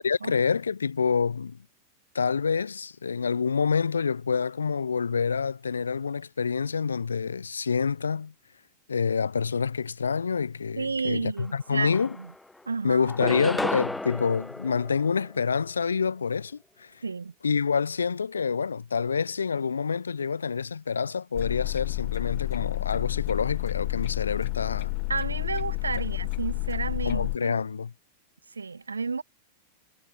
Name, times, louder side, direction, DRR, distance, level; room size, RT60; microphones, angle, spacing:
voice 1, 0.0-1.6 2.1-8.3 8.9-12.2 12.8-16.9 17.4-24.9 27.1-27.9, left 5 dB, 80° left, 0.4 m, -27 dB
voice 2, 10.7-12.3 12.7-13.1 17.0-17.3 25.1-27.5 28.5-29.2, right 4 dB, 80° right, 0.7 m, -31 dB
sound 1, 11.4-11.5 11.8-12.6 13.0-15.6, left 2 dB, 5° left, 0.4 m, -33 dB
sound 2, 21.3-27.4, left 37 dB, 50° left, 0.9 m, -30 dB
figure-of-eight pair, 90°, 0 cm